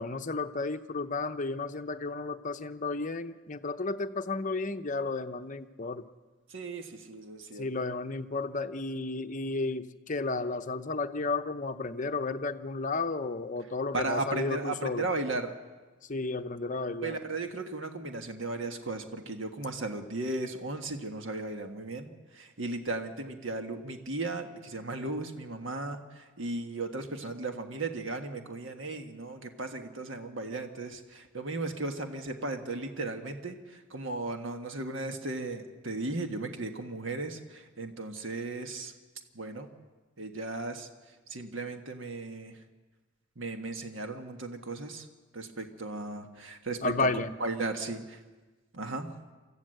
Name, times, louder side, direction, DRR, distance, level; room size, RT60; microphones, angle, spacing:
voice 1, 0.0-6.0 7.6-15.1 16.1-17.2 46.8-47.3, left 3 dB, 35° left, 8 dB, 0.8 m, -33 dB
voice 2, 6.5-7.7 13.9-15.5 17.0-38.9 39.3-39.7 40.2-40.9 41.3-42.6 43.4-45.1 45.3-47.1 47.4-48.2 48.7-49.1, right 2 dB, 60° right, 5 dB, 1.5 m, -36 dB
24.5 x 14.5 x 7.8 m, 1.3 s
head